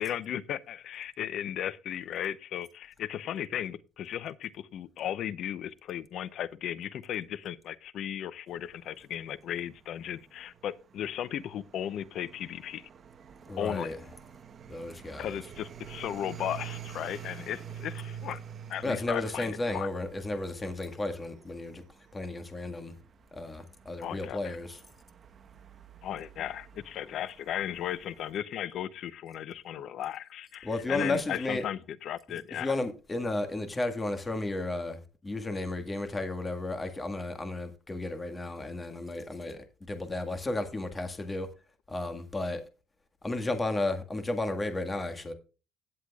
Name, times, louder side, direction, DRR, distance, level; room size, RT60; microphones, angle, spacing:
voice 1, 0.0-12.9 13.6-13.9 15.2-18.4 18.7-19.9 24.0-24.6 26.0-32.7, left 10 dB, 60° left, 0.7 m, -36 dB
sound 1, 8.5-28.3, right 9 dB, 40° right, 1.1 m, -48 dB
voice 2, 13.5-14.0 14.7-15.4 18.8-21.8 22.1-23.0 23.3-24.8 30.6-31.6 32.6-41.5 41.9-42.6 43.2-45.3, left 2 dB, 20° left, 1.7 m, -33 dB
16.0 x 8.1 x 2.4 m
cardioid pair, 120°, 0 cm